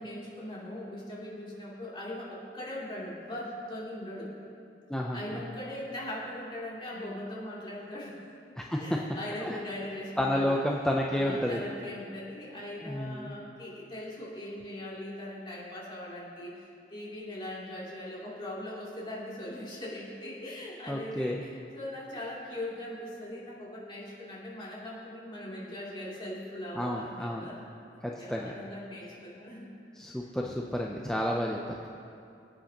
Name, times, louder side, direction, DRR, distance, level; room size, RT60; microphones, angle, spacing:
voice 1, 0.0-4.3 5.1-8.2 8.8-10.6 11.1-27.6 28.2-29.7, left 1 dB, 30° left, -7 dB, 3.0 m, -40 dB
voice 2, 4.9-5.4 8.6-9.0 9.4-9.6 10.2-11.6 12.8-13.4 20.9-21.4 26.8-27.5 28.0-28.5 30.0-31.9, left 1 dB, 5° left, -1 dB, 0.5 m, -31 dB
21.5 x 8.9 x 2.9 m, 2.5 s
head